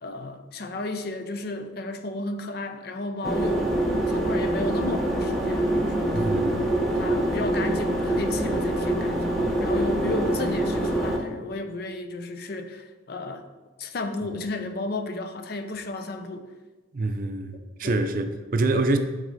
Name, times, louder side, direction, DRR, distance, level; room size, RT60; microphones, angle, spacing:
voice 1, 0.0-3.7 4.1-6.4 6.9-13.4 13.8-16.5 17.8-18.0, left 2 dB, 55° left, 0.5 m, -33 dB
sound 1, 3.2-11.2, right 1 dB, ahead, 0.7 m, -25 dB
voice 2, 6.1-6.7 16.9-19.0, right 2 dB, 45° right, 0.5 m, -26 dB
7.9 x 4.0 x 4.0 m
head